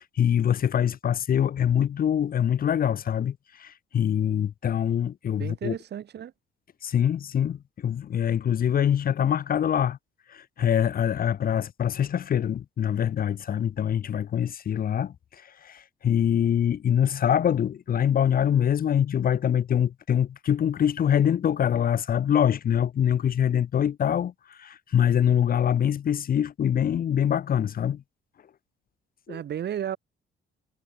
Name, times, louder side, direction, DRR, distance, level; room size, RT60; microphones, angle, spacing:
voice 1, 0.0-5.7 6.8-10.0 10.3-28.0 29.3-29.4, left 9 dB, 45° left, 0.7 m, -24 dB
voice 2, 5.4-6.3 29.3-30.0, right 10 dB, 60° right, 1.4 m, -33 dB
cardioid pair, 90°, 20 cm